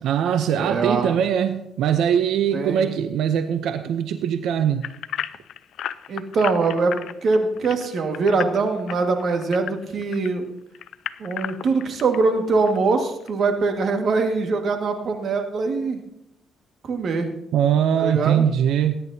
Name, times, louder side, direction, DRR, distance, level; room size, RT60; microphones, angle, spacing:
voice 1, 0.0-4.8 17.5-19.0, right 9 dB, 80° right, 9 dB, 0.6 m, -21 dB
voice 2, 0.6-1.1 2.5-2.9 6.1-10.5 11.2-16.0 16.8-17.3 17.9-18.5, right 3 dB, 60° right, 5 dB, 1.7 m, -23 dB
sound 1, 4.8-10.3 10.7-12.2 12.7-12.8 13.3-13.4, left 10 dB, 75° left, 0.4 m, -33 dB
20.0 x 10.5 x 2.8 m, 0.82 s
cardioid pair, 90°, 0 cm